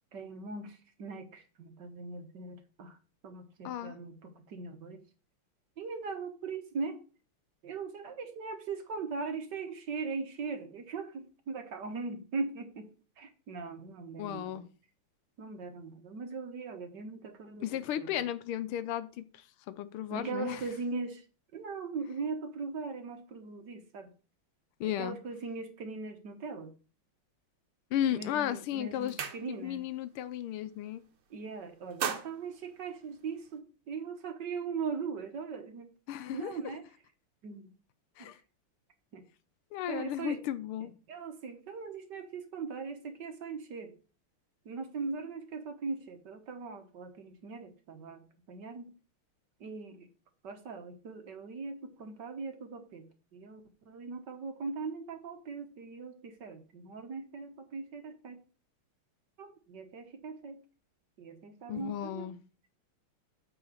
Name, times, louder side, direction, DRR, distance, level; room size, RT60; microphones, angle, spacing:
voice 1, 0.1-3.0 3.2-5.0 5.8-7.0 7.6-12.9 13.2-14.6 15.4-18.2 20.1-21.3 21.5-24.1 24.8-26.7 28.1-29.8 31.3-35.9 36.3-36.9 37.4-37.7 38.2-38.3 39.1-39.2 39.9-40.4 40.8-44.0 44.6-48.9 49.6-50.1 50.4-58.4 59.4-60.6 61.2-62.3, right 4 dB, 55° right, 1.6 m, -40 dB
voice 2, 3.6-3.9 14.2-14.7 17.6-20.6 24.8-25.2 27.9-29.2 29.6-31.0 36.1-36.5 38.2-38.4 39.7-40.9 61.7-62.4, left 11 dB, 80° left, 1.6 m, -34 dB
sound 1, 28.2-28.4 28.7-29.9 30.2-30.5 30.8-31.4 31.7-33.6, right 8 dB, 75° right, 1.9 m, -39 dB
8.8 x 3.9 x 6.7 m
omnidirectional pair, 2.4 m